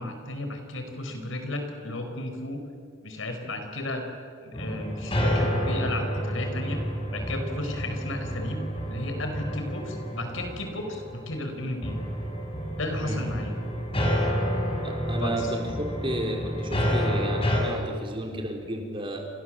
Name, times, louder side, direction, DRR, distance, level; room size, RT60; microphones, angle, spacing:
voice 1, 0.0-2.6 3.0-4.0 4.4-6.8 7.1-12.0 12.8-13.6 15.2-15.5, left 2 dB, 70° left, 5 dB, 5.0 m, -34 dB
sound 1, 4.5-17.6, equal, 30° left, 5.7 m, -29 dB
voice 2, 14.8-19.3, right 1 dB, 25° right, 2 dB, 4.3 m, -32 dB
30.0 x 25.5 x 7.8 m, 2.2 s
head